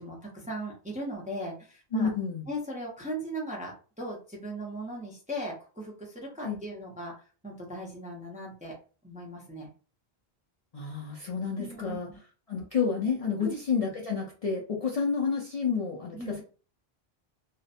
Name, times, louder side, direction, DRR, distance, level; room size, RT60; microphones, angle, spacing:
voice 1, 0.0-2.1 2.5-7.2 7.4-8.7 9.0-9.7 11.6-12.2 13.4-13.6 16.1-16.4, right 1 dB, 10° right, -2 dB, 0.4 m, -38 dB
voice 2, 1.9-2.5 6.4-6.6 10.7-12.1 12.5-16.4, left 5 dB, 50° left, -3 dB, 0.4 m, -30 dB
2.6 x 2.1 x 2.4 m, 0.37 s
omnidirectional pair, 1.1 m